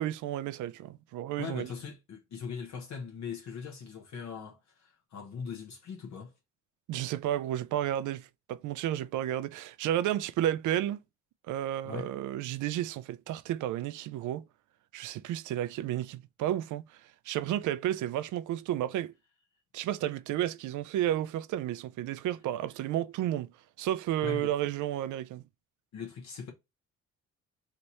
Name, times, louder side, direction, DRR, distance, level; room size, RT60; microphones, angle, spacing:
voice 1, 0.0-1.7 6.9-11.0 11.5-14.4 14.9-16.8 17.3-19.1 19.7-23.5 23.8-25.4, right 12 dB, 80° right, 0.5 m, -32 dB
voice 2, 1.4-6.3 11.8-12.1 24.2-24.5 25.9-26.5, left 6 dB, 65° left, 1.1 m, -40 dB
3.4 x 3.0 x 4.1 m
cardioid pair, 90°, 30 cm